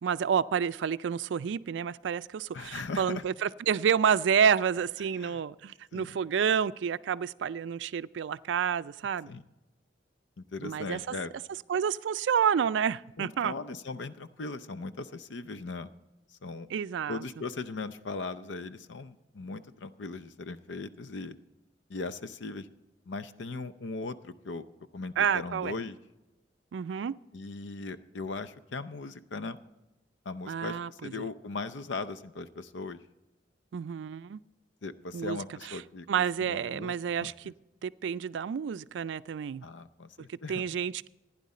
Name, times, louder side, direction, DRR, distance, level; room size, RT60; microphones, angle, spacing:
voice 1, 0.0-9.3 10.6-11.1 11.7-13.5 16.7-17.2 25.2-25.7 26.7-27.1 30.5-31.1 33.7-34.4 35.1-35.4 36.1-37.5 37.8-39.6 40.5-41.1, right 7 dB, 75° right, 17 dB, 0.3 m, -29 dB
voice 2, 2.5-3.2 5.2-5.4 5.9-6.2 9.3-9.4 10.4-11.3 13.2-15.9 16.3-16.7 17.1-21.4 21.9-22.7 23.1-24.7 24.9-26.0 27.3-29.6 30.3-33.0 34.8-36.1 36.4-37.3 39.6-40.6, left 3 dB, 80° left, 13 dB, 0.6 m, -39 dB
15.5 x 9.9 x 4.2 m, 1.0 s
head